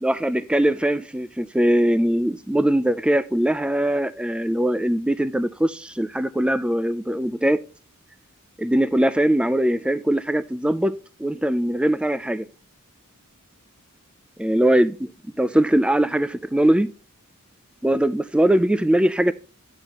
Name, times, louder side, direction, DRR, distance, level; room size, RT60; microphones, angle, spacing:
voice 1, 0.0-7.6 8.6-10.9 11.2-12.5 14.4-15.1 15.4-16.9 17.8-19.3, right 1 dB, 5° right, 0.3 m, -21 dB
8.2 x 8.0 x 2.9 m
head